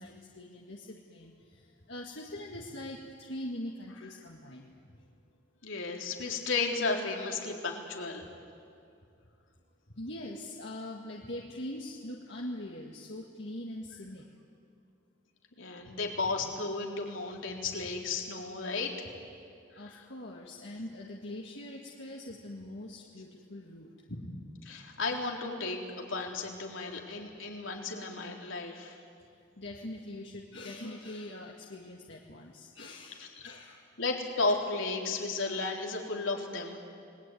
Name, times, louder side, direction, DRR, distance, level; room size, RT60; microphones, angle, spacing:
voice 1, 0.0-4.7 10.0-14.3 19.7-23.9 29.6-33.8, left 1 dB, 65° left, -2 dB, 2.1 m, -42 dB
voice 2, 5.6-8.3 15.6-19.0 19.8-20.0 24.1-24.2 24.6-29.0 34.0-36.8, left 3 dB, 80° left, 0 dB, 3.8 m, -34 dB
29.5 x 20.5 x 9.4 m, 2.4 s
head